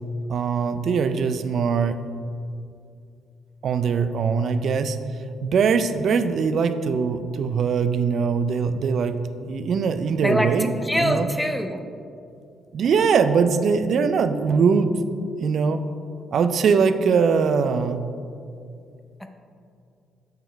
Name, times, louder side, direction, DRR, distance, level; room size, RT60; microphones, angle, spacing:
voice 1, 0.3-2.0 3.6-5.0 5.4-11.3 12.7-15.0 15.4-15.8 16.3-18.0, right 5 dB, 60° right, 11 dB, 0.3 m, -22 dB
voice 2, 10.2-11.8 19.2-19.3, equal, 5° left, 6 dB, 0.5 m, -24 dB
7.7 x 4.5 x 3.3 m, 2.4 s
cardioid pair, 90°, 0 cm